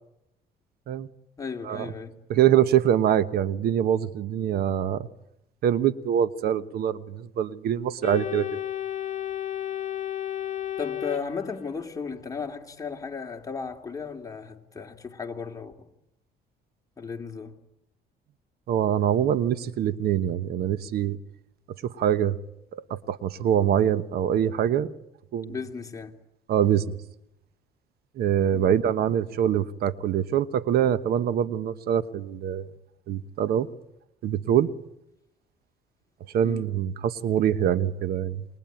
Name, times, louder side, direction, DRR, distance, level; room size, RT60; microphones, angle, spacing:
voice 1, 1.4-2.1 10.8-15.7 17.0-17.6 25.5-26.1 28.5-28.7 36.4-36.7, left 5 dB, 20° left, 2.8 m, -35 dB
voice 2, 2.3-5.1 5.6-8.5 18.7-21.2 21.8-22.4 22.7-24.9 25.3-25.5 26.5-27.0 28.2-32.7 33.1-33.7 34.2-34.7 36.3-38.4, right 10 dB, 65° right, 1.1 m, -24 dB
Organ, 8.0-12.0, left 11 dB, 50° left, 1.5 m, -33 dB
28.5 x 22.0 x 9.2 m
cardioid pair, 110°, 17 cm